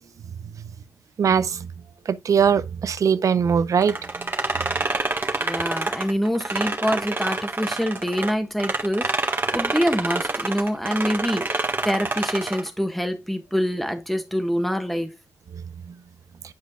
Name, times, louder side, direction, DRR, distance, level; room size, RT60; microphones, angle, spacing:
voice 1, 1.2-1.6 2.1-3.9, right 7 dB, 65° right, 0.6 m, -20 dB
sound 1, 3.8-8.3 8.6-12.7, right 3 dB, 35° right, 1.6 m, -27 dB
voice 2, 5.4-15.1, equal, ahead, 1.6 m, -25 dB
10.5 x 5.0 x 2.4 m
cardioid pair, 95°, 6 cm